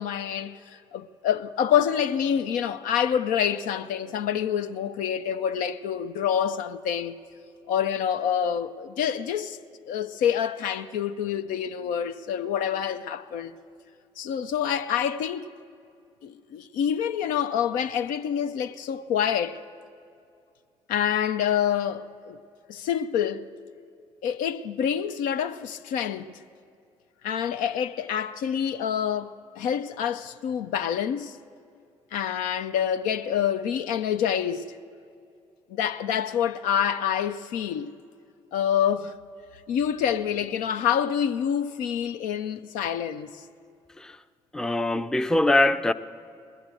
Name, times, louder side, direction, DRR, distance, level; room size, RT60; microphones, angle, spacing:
voice 1, 0.0-7.2 7.7-9.6 9.9-13.5 14.2-15.4 16.2-19.6 20.9-22.4 22.7-23.5 24.2-26.3 27.2-31.4 32.1-34.7 35.7-37.9 38.5-39.1 39.7-43.3, left 9 dB, 70° left, 0.5 m, -27 dB
voice 2, 44.5-45.9, left 1 dB, 5° left, 0.5 m, -22 dB
20.0 x 7.7 x 8.2 m
hypercardioid pair, 45°, 14 cm